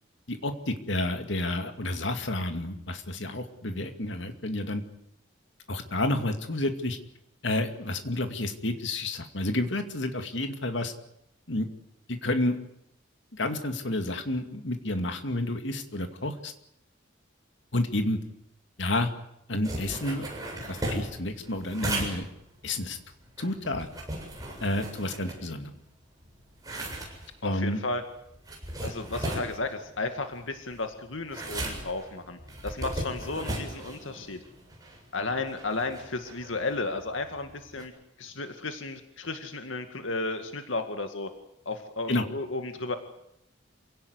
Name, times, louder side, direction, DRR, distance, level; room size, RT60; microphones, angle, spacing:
voice 1, 0.3-4.8 5.7-7.0 7.4-10.9 11.5-11.7 12.1-12.6 13.3-16.5 17.7-18.2 18.8-19.1 19.5-20.3 20.7-22.3 22.6-23.0 23.4-23.9 24.6-25.8 27.4-27.8 42.1-42.2, left 1 dB, 70° left, 6 dB, 2.4 m, -30 dB
sound 1, 19.6-25.9 26.2-37.8, right 1 dB, 20° right, 7.6 m, -37 dB
voice 2, 27.4-28.0 28.8-32.4 32.6-34.4 35.1-37.9 38.2-41.3 41.7-43.0, left 3 dB, 85° left, 6 dB, 2.1 m, -33 dB
27.5 x 17.5 x 9.6 m, 0.80 s
head